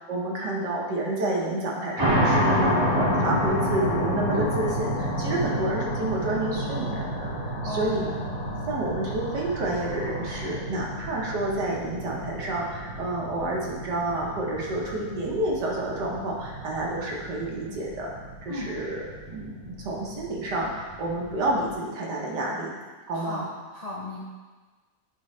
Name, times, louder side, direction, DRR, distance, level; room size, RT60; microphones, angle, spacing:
voice 1, 0.0-7.3 7.6-8.1 8.7-18.1 18.4-22.7 23.1-23.4, right 1 dB, 65° right, -2 dB, 1.7 m, -29 dB
sound 1, 2.0-21.7, equal, 15° right, 1.2 m, -30 dB
sound 2, 5.5-10.5, left 2 dB, ahead, 0.9 m, -42 dB
voice 2, 7.6-8.3 18.5-18.7 23.1-24.2, left 1 dB, 80° left, -5 dB, 0.3 m, -35 dB
9.4 x 4.0 x 3.2 m, 1.3 s
omnidirectional pair, 2.0 m